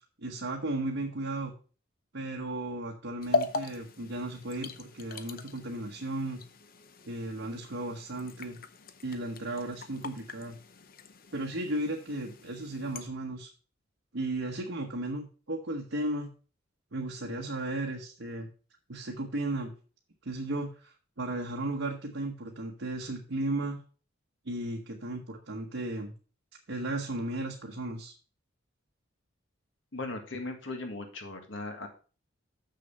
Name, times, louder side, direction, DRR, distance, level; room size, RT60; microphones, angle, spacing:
voice 1, 0.2-1.5 2.1-6.4 7.1-8.6 9.0-10.6 11.3-13.5 14.1-16.3 16.9-18.5 18.9-19.7 20.2-23.8 24.5-26.1 26.7-28.1, right 2 dB, 65° right, 0 dB, 1.1 m, -35 dB
sound 1, 3.2-13.1, left 3 dB, 45° left, 0.7 m, -39 dB
voice 2, 29.9-31.9, left 2 dB, 70° left, 5 dB, 1.8 m, -38 dB
6.9 x 6.5 x 5.3 m, 0.38 s
head